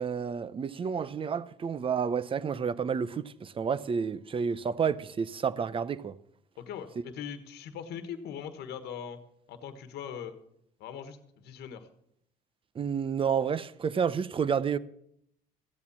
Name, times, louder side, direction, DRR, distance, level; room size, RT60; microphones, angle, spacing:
voice 1, 0.0-6.2 12.8-14.8, right 6 dB, 30° right, 0.7 m, -30 dB
voice 2, 6.6-9.2 9.5-10.4 10.8-11.9, left 8 dB, 75° left, 1.3 m, -41 dB
14.5 x 8.6 x 7.2 m
cardioid pair, 110°, 17 cm